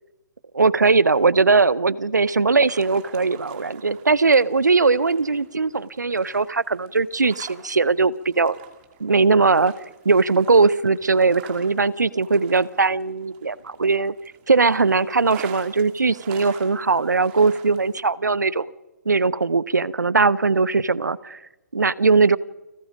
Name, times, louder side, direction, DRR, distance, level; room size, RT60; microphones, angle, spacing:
voice 1, 0.5-8.6 9.0-9.7 10.0-14.1 14.5-18.7 19.1-21.4 21.7-22.4, right 4 dB, 80° right, 21 dB, 0.7 m, -19 dB
sound 1, 2.6-18.0, right 9 dB, 35° right, 2.6 m, -46 dB
29.5 x 18.0 x 5.2 m, 1.1 s
figure-of-eight pair, 130°, 9 cm